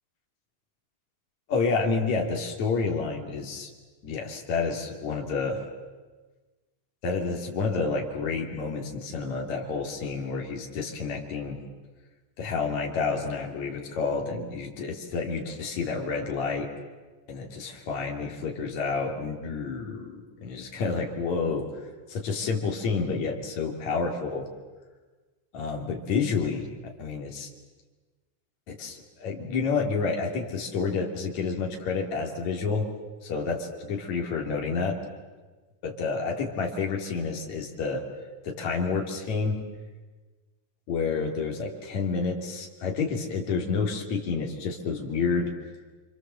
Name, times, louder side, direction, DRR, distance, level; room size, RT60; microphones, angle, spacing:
voice 1, 1.5-3.7 4.0-5.6 7.0-11.6 12.4-16.7 17.3-21.7 22.1-24.5 25.5-26.7 27.0-27.5 28.7-32.9 33.2-35.0 35.8-38.0 38.4-39.6 40.9-45.5, left 4 dB, 65° left, 1 dB, 4.2 m, -29 dB
28.5 x 26.0 x 7.7 m, 1.3 s
omnidirectional pair, 3.6 m